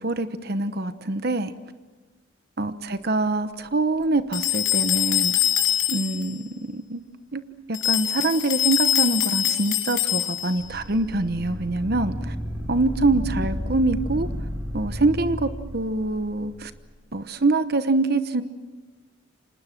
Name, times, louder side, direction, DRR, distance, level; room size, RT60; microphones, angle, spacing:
voice 1, 0.0-1.5 2.6-5.3 5.9-7.0 7.3-7.4 7.7-12.3 12.7-14.3 14.7-16.7 17.1-18.4, right 2 dB, 50° right, 11 dB, 1.0 m, -24 dB
sound 1, 4.3-6.3 7.7-10.6, left 12 dB, 75° left, 3.1 m, -24 dB
sound 2, 10.6-16.7, equal, 10° right, 7.4 m, -32 dB
29.5 x 26.0 x 6.0 m, 1.2 s
head